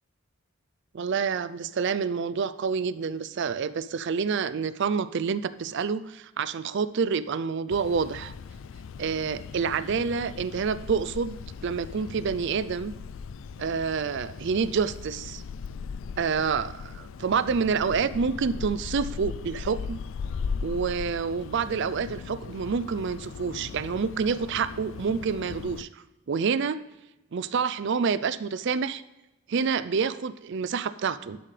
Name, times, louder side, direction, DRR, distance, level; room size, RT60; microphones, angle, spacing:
voice 1, 0.9-8.3 9.0-11.4 11.6-12.9 13.6-15.4 16.2-20.0 20.6-26.8 27.3-29.0 29.5-31.4, right 5 dB, 55° right, 15 dB, 0.4 m, -28 dB
sound 1, 7.7-25.8, left 5 dB, 60° left, 0.3 m, -38 dB
12.0 x 7.5 x 3.3 m, 0.99 s
head